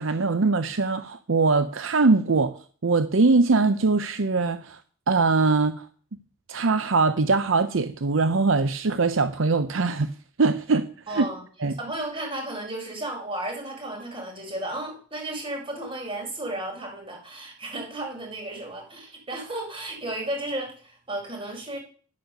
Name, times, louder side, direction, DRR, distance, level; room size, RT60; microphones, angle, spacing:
voice 1, 0.0-2.6 2.8-4.8 5.1-5.9 6.5-10.1 10.4-11.3 11.6-11.7, right 3 dB, 65° right, 11 dB, 0.7 m, -22 dB
voice 2, 11.1-11.4 11.8-21.8, right 1 dB, 25° right, 1 dB, 4.9 m, -33 dB
10.5 x 9.5 x 6.6 m, 0.43 s
head